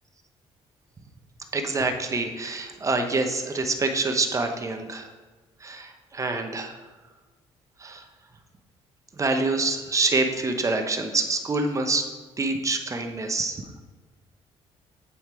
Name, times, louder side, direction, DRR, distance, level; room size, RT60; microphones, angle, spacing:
voice 1, 1.5-5.1 5.6-6.8 7.8-8.0 9.2-12.0 12.4-13.6, right 3 dB, 30° right, 5 dB, 0.9 m, -26 dB
8.5 x 4.4 x 4.7 m, 1.3 s
cardioid pair, 85°, 11 cm